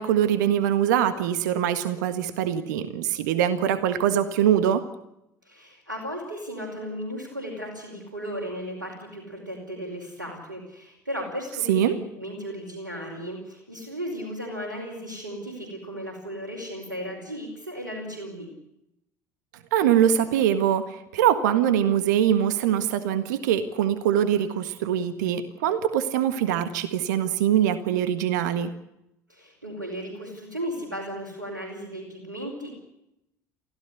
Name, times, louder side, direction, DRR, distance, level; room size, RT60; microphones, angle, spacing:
voice 1, 0.0-4.8 11.7-12.0 19.7-28.7, right 10 dB, 70° right, 12 dB, 1.6 m, -23 dB
voice 2, 5.4-18.5 29.3-32.7, equal, 90° right, -1 dB, 5.1 m, -35 dB
24.5 x 16.0 x 8.1 m, 0.83 s
figure-of-eight pair, 65°, 10 cm